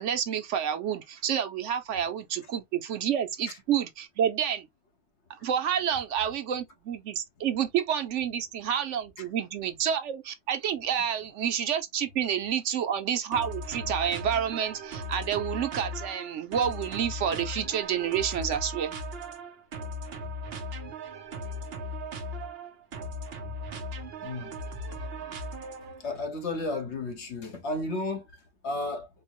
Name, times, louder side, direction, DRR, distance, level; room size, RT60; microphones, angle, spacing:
voice 1, 0.0-4.7 5.4-19.0, right 9 dB, 85° right, 1.0 m, -29 dB
sound 1, 13.3-26.1, equal, 60° right, 1.0 m, -38 dB
voice 2, 24.2-24.5 26.0-29.1, left 2 dB, 70° left, 1.3 m, -33 dB
4.5 x 2.1 x 2.9 m
omnidirectional pair, 1.2 m